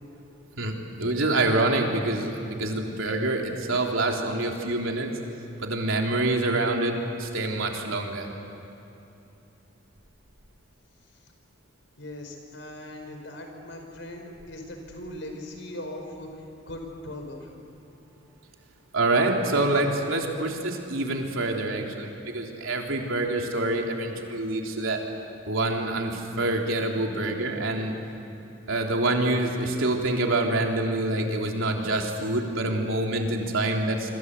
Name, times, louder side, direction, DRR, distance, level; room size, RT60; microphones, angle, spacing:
voice 1, 0.6-5.1 5.6-8.3 18.9-25.0 25.5-27.9 28.7-34.1, right 2 dB, 85° right, 1 dB, 3.5 m, -26 dB
voice 2, 12.0-17.5, left 1 dB, 65° left, 3 dB, 5.1 m, -39 dB
26.5 x 25.5 x 8.3 m, 2.9 s
head